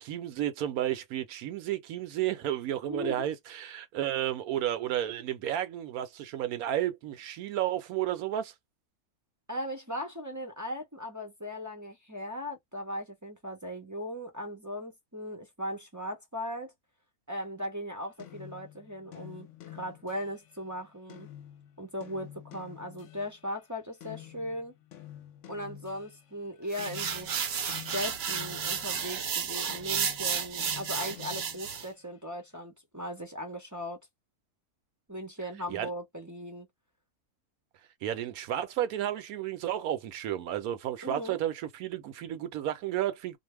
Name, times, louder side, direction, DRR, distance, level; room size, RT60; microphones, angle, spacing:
voice 1, 0.0-8.5 35.7-35.9 38.0-43.4, right 11 dB, 75° right, 1.0 m, -32 dB
voice 2, 2.9-3.3 9.5-16.7 17.3-21.3 21.8-24.7 25.5-27.5 27.9-34.0 35.1-36.7 41.0-41.4, equal, 20° right, 0.4 m, -38 dB
sound 1, 18.2-23.5 24.0-29.3 29.7-32.1, left 13 dB, 65° left, 0.9 m, -49 dB
sound 2, 26.7-31.9, right 7 dB, 60° right, 0.7 m, -32 dB
2.6 x 2.1 x 3.1 m
omnidirectional pair, 1.6 m